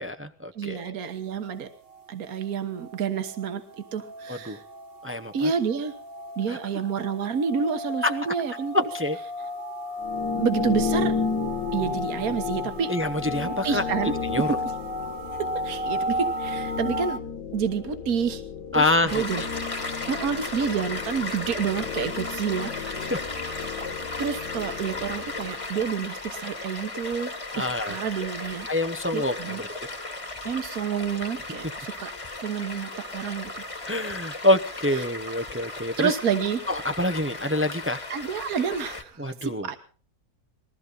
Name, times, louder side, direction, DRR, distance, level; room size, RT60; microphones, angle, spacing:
voice 1, 0.0-0.9 4.3-4.6 5.0-5.5 6.5-6.6 8.0-8.1 8.7-9.2 12.9-14.6 18.7-19.5 23.1-23.2 27.5-28.0 28.7-29.9 33.8-36.2 36.7-38.0 39.2-39.7, left 1 dB, 20° right, 9 dB, 0.3 m, -26 dB
voice 2, 0.5-1.7 2.1-4.6 5.3-5.9 6.4-8.8 10.4-11.2 11.7-12.9 13.4-14.7 15.4-17.2 17.5-18.4 18.7-19.4 20.1-23.1 24.2-27.3 27.6-28.7 29.1-29.6 30.4-32.1 32.4-33.6 36.0-36.6 38.1-39.8, right 6 dB, 65° right, 8 dB, 1.7 m, -29 dB
sound 1, 1.0-17.2, equal, 40° right, 1.4 m, -34 dB
sound 2, 10.0-25.8, left 5 dB, 80° left, 1.6 m, -33 dB
Stream, 19.1-39.0, left 2 dB, 20° left, 1.5 m, -36 dB
20.5 x 14.5 x 4.0 m, 0.41 s
omnidirectional pair, 1.7 m